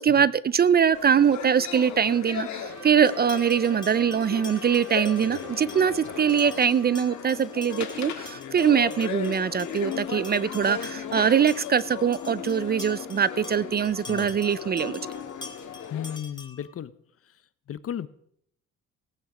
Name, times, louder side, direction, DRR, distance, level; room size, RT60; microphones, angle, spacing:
voice 1, 0.0-15.0, right 7 dB, 35° right, 20 dB, 0.4 m, -23 dB
sound 1, 0.9-16.2, left 7 dB, 70° left, 2.0 m, -36 dB
Trumpet, 2.7-7.4, right 2 dB, 85° right, 5.7 m, -47 dB
sound 2, 3.1-16.7, left 3 dB, 15° left, 2.0 m, -46 dB
voice 2, 15.9-16.9 17.3-17.4 17.7-18.1, left 9 dB, 50° left, 16 dB, 0.8 m, -34 dB
18.0 x 9.1 x 5.0 m, 0.69 s
cardioid pair, 90°, 30 cm